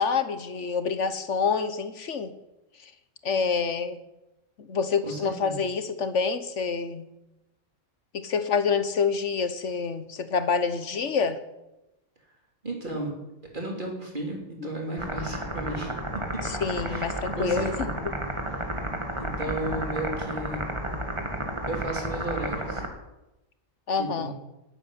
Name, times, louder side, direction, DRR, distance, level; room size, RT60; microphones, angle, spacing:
voice 1, 0.0-2.3 3.2-4.0 4.6-7.1 8.1-11.4 14.6-14.7 16.4-17.9 23.9-24.3, left 5 dB, 75° left, 11 dB, 1.4 m, -27 dB
voice 2, 5.0-5.6 12.6-13.1 13.5-16.2 16.9-17.1 17.3-18.1 18.5-18.6 19.2-20.6 21.7-22.8 24.0-24.3, right 1 dB, 40° right, 0 dB, 3.7 m, -34 dB
sound 1, 15.0-22.9, right 1 dB, 25° right, 1.9 m, -32 dB
13.0 x 8.7 x 10.0 m, 0.94 s
omnidirectional pair, 1.2 m